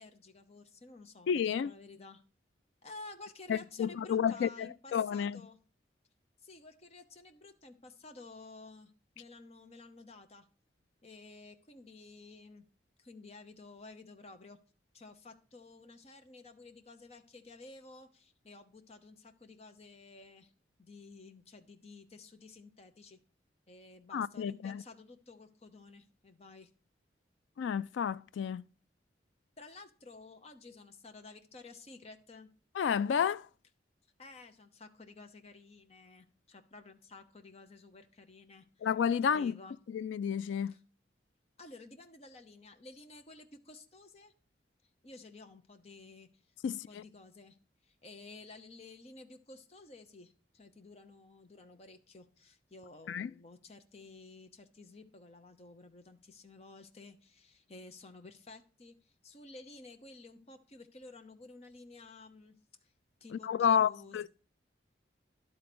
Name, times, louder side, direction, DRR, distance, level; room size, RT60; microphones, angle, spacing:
voice 1, 0.0-2.2 2.8-5.6 6.4-8.9 9.2-10.5 11.0-12.7 13.0-14.6 14.9-20.5 20.8-23.2 23.7-26.7 29.6-32.5 34.2-38.9 39.3-39.7 40.7-40.8 41.6-44.3 45.0-46.3 46.7-47.6 47.8-62.6 62.8-62.9 63.2-64.3, left 3 dB, 35° left, 0.8 m, -53 dB
voice 2, 1.3-1.7 3.5-5.4 24.1-24.8 27.6-28.6 32.8-33.5 38.8-39.6 39.9-40.7 46.6-47.0 53.1-53.3 63.3-64.3, left 7 dB, 85° left, 0.3 m, -31 dB
11.5 x 3.9 x 6.0 m
head